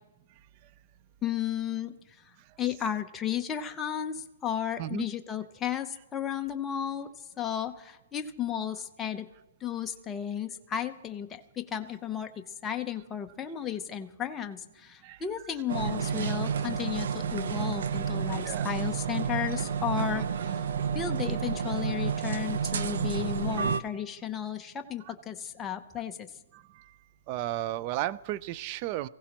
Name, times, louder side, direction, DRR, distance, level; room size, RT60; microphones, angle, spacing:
voice 1, 1.2-2.0 2.6-7.1 7.4-9.3 9.6-12.3 12.6-26.3, left 9 dB, 15° left, 5 dB, 0.7 m, -34 dB
sound 1, 15.7-23.8, right 7 dB, 70° right, 0.7 m, -30 dB
voice 2, 27.3-29.1, right 14 dB, 35° right, 18 dB, 0.4 m, -33 dB
23.5 x 15.5 x 3.0 m, 0.98 s
hypercardioid pair, 150°, 0 cm